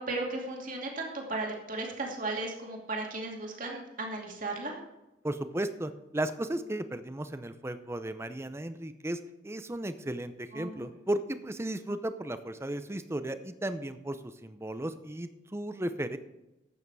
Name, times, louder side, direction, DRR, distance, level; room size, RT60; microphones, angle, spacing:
voice 1, 0.0-4.7 10.5-10.9, right 2 dB, 45° right, 0 dB, 2.5 m, -35 dB
voice 2, 5.2-16.2, right 1 dB, 15° right, 11 dB, 0.6 m, -35 dB
12.5 x 8.5 x 4.8 m, 0.98 s
head